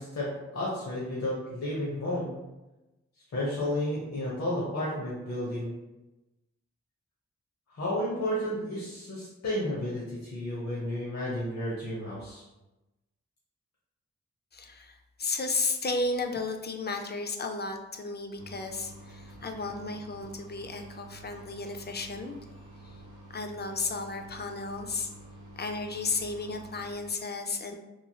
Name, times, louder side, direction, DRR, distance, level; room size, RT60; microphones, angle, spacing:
voice 1, 0.0-2.3 3.3-5.7 7.7-12.4, left 1 dB, 65° left, -6 dB, 0.8 m, -32 dB
voice 2, 14.5-22.3 22.8-22.9 23.3-25.1 25.6-27.8, left 3 dB, 35° left, 5 dB, 0.4 m, -33 dB
sound 1, 18.4-27.0, right 1 dB, 85° right, 0.6 m, -49 dB
3.0 x 2.3 x 2.7 m, 1.0 s
wide cardioid pair, 55°, 29 cm